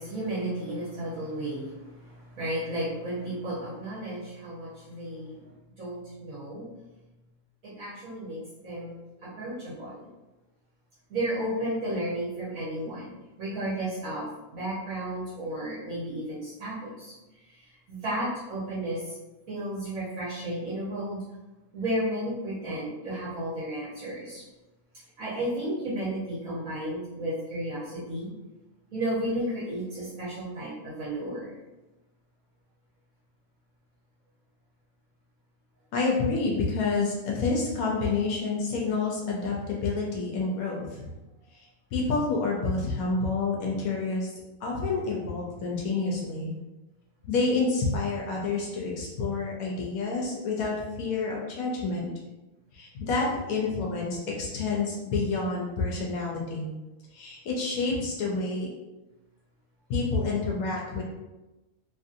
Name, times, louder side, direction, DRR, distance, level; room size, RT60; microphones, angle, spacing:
voice 1, 0.0-5.4 5.8-6.6 7.6-10.0 11.1-17.1 17.5-17.6 17.9-19.0 19.5-21.2 21.7-24.4 25.2-28.3 28.9-31.5, right 1 dB, 70° right, -10 dB, 1.3 m, -33 dB
voice 2, 35.9-41.1 41.9-44.3 44.6-46.5 47.3-52.1 52.7-56.7 57.1-58.7 59.9-61.0, left 3 dB, 85° left, -2 dB, 1.0 m, -28 dB
3.0 x 2.6 x 2.5 m, 1.1 s
omnidirectional pair, 1.5 m